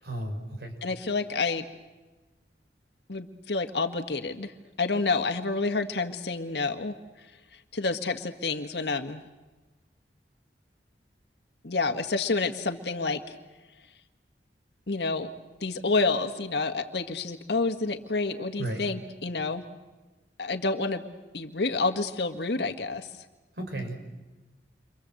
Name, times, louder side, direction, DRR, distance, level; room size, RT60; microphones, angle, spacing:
voice 1, 0.0-0.7 18.6-18.8 23.6-24.0, right 1 dB, 65° right, 5 dB, 5.9 m, -34 dB
voice 2, 0.8-1.6 3.1-4.5 4.8-6.9 7.7-9.2 11.6-13.2 14.9-15.3 15.6-19.6 20.4-21.0 21.3-23.1, left 3 dB, 70° left, 6 dB, 1.6 m, -28 dB
29.5 x 26.0 x 7.9 m, 1.2 s
head